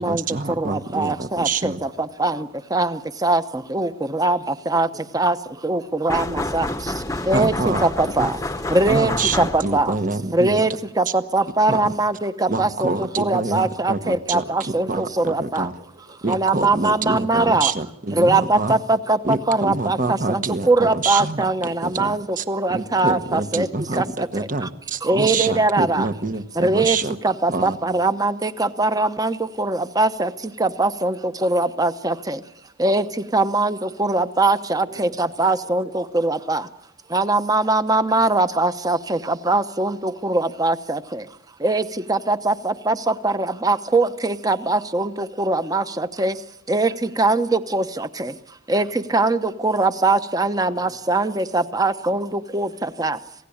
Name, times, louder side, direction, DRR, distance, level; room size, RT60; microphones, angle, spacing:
voice 1, 0.0-1.8 7.3-8.3 8.9-10.6 11.7-11.9 12.5-15.7 16.2-18.8 19.2-21.4 21.8-22.4 22.7-27.1 27.5-27.8, right 3 dB, 45° right, 10 dB, 1.2 m, -26 dB
voice 2, 0.6-1.7 2.2-3.4 3.7-4.4 4.7-4.9 5.1-5.4 5.6-6.7 7.3-8.4 8.7-9.1 9.4-9.9 10.3-15.7 16.3-17.7 18.1-23.7 24.0-24.3 25.0-26.1 26.6-27.0 27.2-30.3 30.6-31.1 31.4-32.4 32.8-33.0 33.3-36.6 37.1-41.2 41.6-46.3 46.7-48.3 48.7-52.3 52.5-53.2, right 2 dB, 20° right, 11 dB, 1.0 m, -21 dB
voice 3, 1.8-2.5 4.7-7.6 8.3-8.8 11.2-11.3 14.3-16.6 19.0-19.6 21.9-22.0 22.9-23.0 34.8-35.3 35.6-35.7 50.6-51.0 51.3-51.4 53.0-53.1, right 1 dB, 80° right, 1 dB, 3.5 m, -48 dB
sound 1, 6.1-10.0, left 2 dB, 15° left, 1.0 m, -28 dB
27.0 x 16.5 x 8.7 m, 0.81 s
head